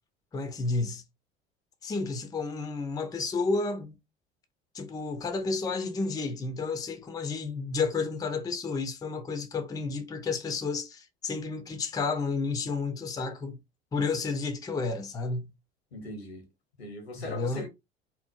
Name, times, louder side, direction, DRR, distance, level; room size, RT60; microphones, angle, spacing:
voice 1, 0.3-1.0 1.8-4.0 4.7-13.6 13.9-15.5 17.2-17.6, left 4 dB, 10° left, 0.4 m, -31 dB
voice 2, 15.9-16.4 16.8-17.7, left 1 dB, 80° left, 0.9 m, -39 dB
2.8 x 2.0 x 2.2 m
figure-of-eight pair, 65°, 31 cm